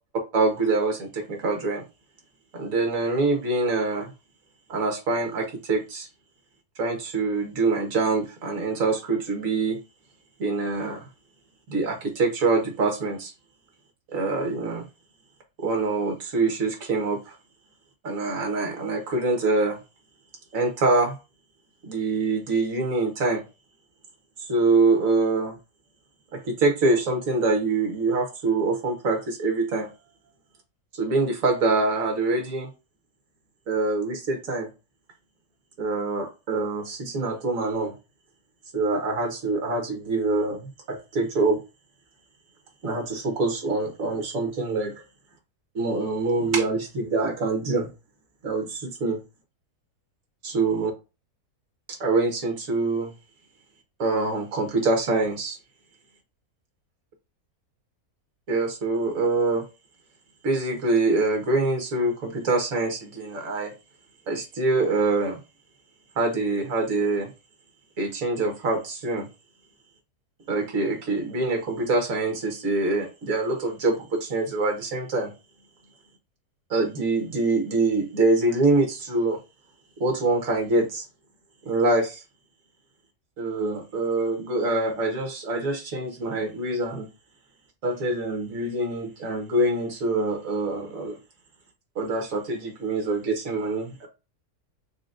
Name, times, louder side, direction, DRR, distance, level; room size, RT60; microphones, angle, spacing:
voice 1, 0.3-1.8 2.5-4.1 4.7-6.1 6.8-9.8 10.4-11.1 11.7-13.3 14.1-14.9 15.6-17.4 18.0-19.8 20.5-21.2 21.8-23.4 24.4-25.6 26.3-29.9 30.9-32.7 33.7-34.7 35.8-38.0 38.7-41.6 42.8-45.0 45.8-47.9 48.4-49.2 50.4-50.9 51.9-53.1 54.0-55.6 58.5-59.6 60.4-63.7 64.3-65.4 66.2-67.3 68.0-69.3 70.5-75.3 76.7-79.4 80.0-81.0 81.7-82.2 83.4-87.1 87.8-91.2 92.0-94.1, right 3 dB, 60° right, 1.8 m, -25 dB
6.0 x 2.4 x 2.6 m
omnidirectional pair, 1.6 m